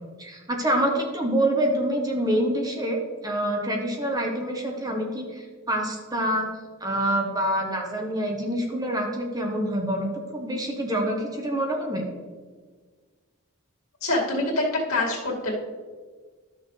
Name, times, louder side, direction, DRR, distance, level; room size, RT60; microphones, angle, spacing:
voice 1, 0.2-6.5 6.8-12.0, right 1 dB, 15° right, 1 dB, 1.1 m, -26 dB
voice 2, 14.0-15.5, left 2 dB, 80° left, -3 dB, 2.3 m, -25 dB
12.0 x 6.5 x 3.3 m, 1.5 s
head